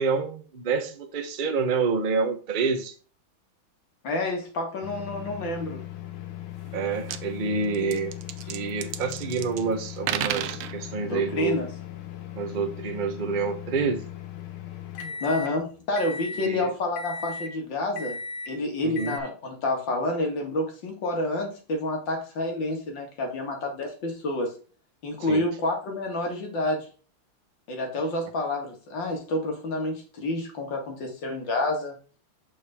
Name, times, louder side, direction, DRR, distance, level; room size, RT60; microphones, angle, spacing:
voice 1, 0.0-2.9 6.7-8.2 8.5-11.6 12.3-14.0 16.4-16.7 18.8-19.2 25.3-25.4, right 4 dB, 55° right, 0.5 m, -28 dB
voice 2, 4.0-5.8 11.0-11.7 15.2-18.2 18.5-24.5 25.0-26.9 27.7-32.0, left 2 dB, 65° left, 2.4 m, -29 dB
sound 1, 4.8-15.5 16.0-16.5 17.0-17.5 18.0-18.5 19.0-19.2, left 8 dB, 90° left, 1.8 m, -38 dB
sound 2, 6.7-6.8 7.0-7.2 7.7-9.6 10.0-10.7, right 11 dB, 85° right, 1.5 m, -32 dB
6.5 x 5.3 x 3.4 m
omnidirectional pair, 2.2 m